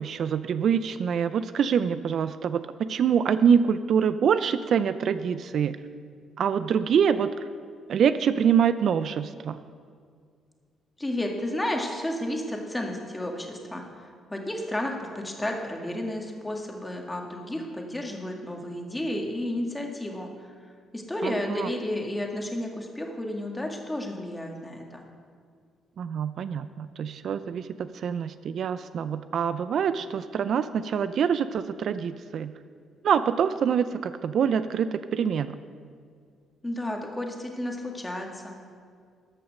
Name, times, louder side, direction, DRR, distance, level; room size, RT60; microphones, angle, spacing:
voice 1, 0.0-5.8 6.4-7.5 7.9-9.6 21.2-21.7 26.0-32.5 33.0-35.6, right 7 dB, 65° right, 12 dB, 0.4 m, -25 dB
voice 2, 11.0-20.5 20.9-25.0 36.6-38.6, left 1 dB, 10° left, 1 dB, 1.8 m, -32 dB
14.0 x 5.8 x 6.5 m, 2.1 s
cardioid pair, 90°, 0 cm